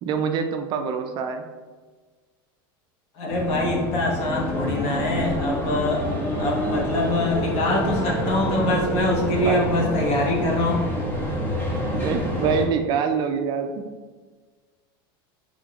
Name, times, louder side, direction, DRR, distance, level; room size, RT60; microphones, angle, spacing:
voice 1, 0.0-1.4 9.4-9.6 11.9-13.9, right 6 dB, 40° right, 6 dB, 0.4 m, -25 dB
voice 2, 3.2-10.9, left 1 dB, 55° left, -1 dB, 1.2 m, -24 dB
sound 1, 3.3-12.7, equal, 15° left, 0.9 m, -27 dB
5.0 x 3.6 x 2.4 m, 1.4 s
supercardioid pair, 135°, 12 cm